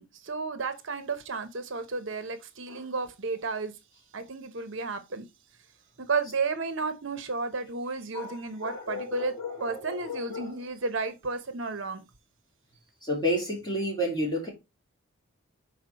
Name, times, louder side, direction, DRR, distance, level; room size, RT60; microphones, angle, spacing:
voice 1, 0.0-3.8 4.1-5.2 6.0-9.3 9.6-12.0, right 4 dB, 60° right, 0.8 m, -32 dB
voice 2, 8.1-10.6 13.0-14.5, left 1 dB, 20° left, 2.5 m, -31 dB
6.0 x 4.5 x 4.1 m
head